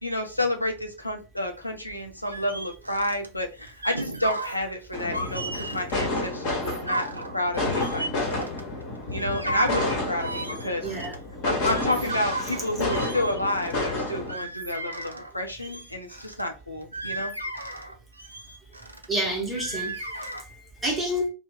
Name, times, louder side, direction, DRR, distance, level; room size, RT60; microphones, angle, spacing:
voice 1, 0.0-8.5 9.1-10.8 11.4-17.3, left 1 dB, 85° left, 0.5 m, -30 dB
sound 1, 2.2-3.3 3.7-4.6 5.0-5.9 6.5-8.8 9.2-11.2 11.5-15.3 15.6-16.4 16.8-19.1 19.5-20.4, right 2 dB, 85° right, 0.4 m, -35 dB
sound 2, 4.9-14.3, left 2 dB, 45° left, 1.0 m, -30 dB
voice 2, 10.8-11.1 16.1-16.2 19.1-21.3, equal, 10° right, 0.9 m, -29 dB
2.5 x 2.1 x 3.4 m
figure-of-eight pair, 90°, 0 cm